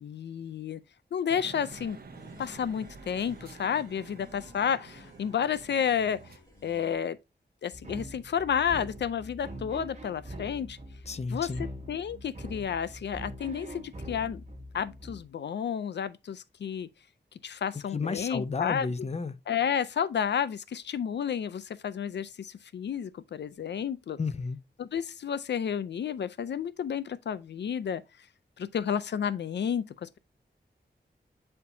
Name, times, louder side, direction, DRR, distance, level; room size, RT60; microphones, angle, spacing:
voice 1, 0.0-0.8 1.1-2.0 2.4-6.2 6.6-7.2 7.6-10.8 11.3-11.5 11.9-14.4 14.7-16.9 17.4-18.9 19.5-24.2 24.8-28.0 28.6-30.2, left 8 dB, 85° left, 0.4 m, -31 dB
sound 1, 1.3-6.4, right 5 dB, 60° right, 0.7 m, -49 dB
sound 2, 1.7-7.0, left 2 dB, 20° left, 3.5 m, -55 dB
sound 3, 7.7-15.2, equal, 40° right, 1.2 m, -43 dB
voice 2, 11.1-11.6 17.9-19.3 24.2-24.6, left 4 dB, 40° left, 0.6 m, -32 dB
8.3 x 4.4 x 2.7 m
wide cardioid pair, 115°, 18 cm